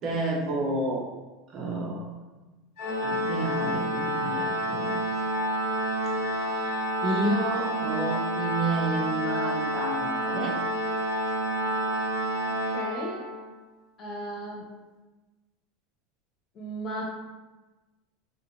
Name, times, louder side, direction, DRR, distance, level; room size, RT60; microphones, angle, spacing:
voice 1, 0.0-1.1 1.5-2.1 3.0-5.0 6.2-10.6, right 2 dB, 40° right, -2 dB, 0.7 m, -30 dB
Organ, 2.8-13.5, right 1 dB, 70° left, 1.1 m, -29 dB
voice 2, 12.7-13.2 14.0-14.6 16.5-17.2, right 1 dB, 35° left, -3 dB, 0.8 m, -35 dB
2.7 x 2.4 x 2.8 m, 1.2 s
supercardioid pair, 135°, 0 cm